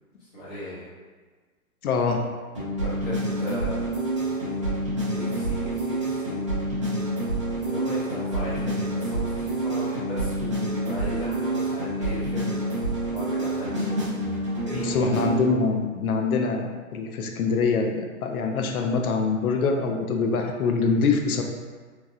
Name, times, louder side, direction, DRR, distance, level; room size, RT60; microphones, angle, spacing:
voice 1, 0.2-0.9 2.8-3.7 4.4-4.7 5.1-6.4 7.6-12.7 13.0-13.8 14.6-15.1, equal, 15° left, -10 dB, 0.7 m, -36 dB
voice 2, 1.8-2.3 14.7-21.4, left 4 dB, 85° left, 3 dB, 0.5 m, -24 dB
sound 1, 2.6-15.5, right 1 dB, 25° right, 0.3 m, -28 dB
3.1 x 2.5 x 2.4 m, 1.4 s
hypercardioid pair, 150°, 42 cm